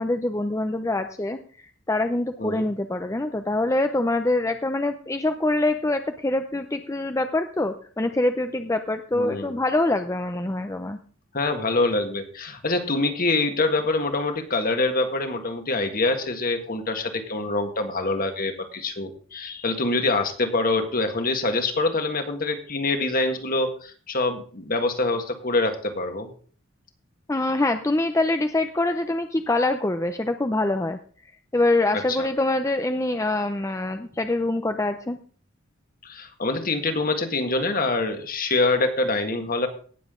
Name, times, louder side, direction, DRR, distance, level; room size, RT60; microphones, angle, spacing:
voice 1, 0.0-1.4 1.9-11.0 27.3-31.0 31.5-35.2, left 2 dB, 15° left, 7 dB, 0.6 m, -24 dB
voice 2, 9.1-9.5 11.3-26.3 31.9-32.3 36.0-39.7, left 2 dB, 45° left, 6 dB, 1.7 m, -25 dB
18.0 x 7.4 x 3.7 m, 0.43 s
head